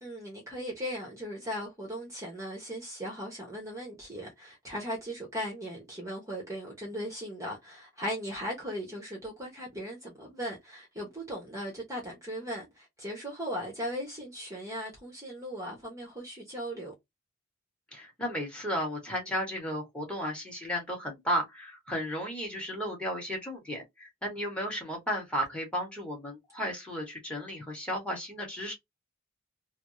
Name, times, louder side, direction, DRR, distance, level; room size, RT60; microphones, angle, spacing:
voice 1, 0.0-16.9, equal, 15° right, 0.9 m, -38 dB
voice 2, 17.9-28.7, equal, 5° left, 1.3 m, -34 dB
3.4 x 2.0 x 2.5 m
head